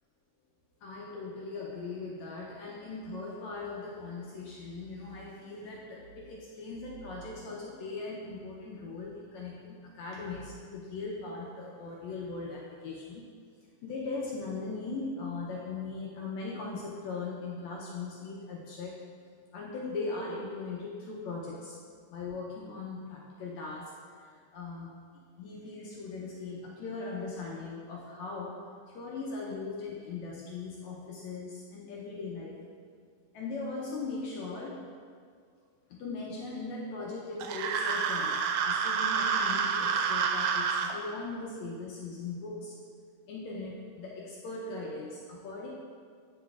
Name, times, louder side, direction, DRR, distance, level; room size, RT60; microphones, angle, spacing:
voice 1, 0.8-13.2 13.8-19.0 19.5-21.8 22.1-24.9 25.4-32.6 33.3-34.9 35.9-42.7 43.3-45.7, left 3 dB, 80° left, -3 dB, 1.6 m, -39 dB
sound 1, 37.4-40.9, right 6 dB, 85° right, 2.2 m, -28 dB
8.4 x 5.8 x 2.4 m, 2.1 s
omnidirectional pair, 3.9 m